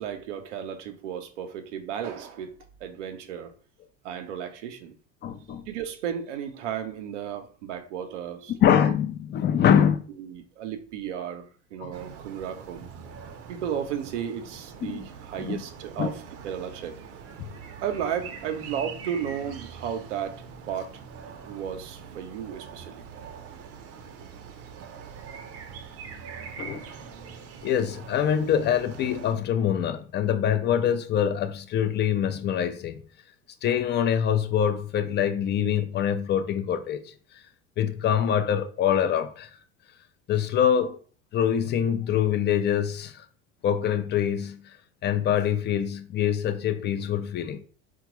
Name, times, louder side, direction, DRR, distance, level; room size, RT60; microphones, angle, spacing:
voice 1, 0.0-2.5 2.8-3.5 4.0-4.9 5.7-8.8 9.7-11.5 11.7-12.9 13.5-17.0 17.8-21.0 21.4-23.1, right 8 dB, 85° right, 0.6 m, -34 dB
voice 2, 5.2-5.6 8.6-10.0 11.8-11.9 14.8-15.0 15.4-15.6 16.0-16.1 26.6-26.8 27.6-33.0 33.6-37.0 37.8-39.5 40.3-41.0 41.3-43.3 43.6-44.6 45.0-47.6, left 9 dB, 30° left, 0.4 m, -24 dB
sound 1, 11.9-29.3, right 6 dB, 45° right, 0.6 m, -43 dB
3.6 x 2.2 x 3.0 m
hypercardioid pair, 85°, 35 cm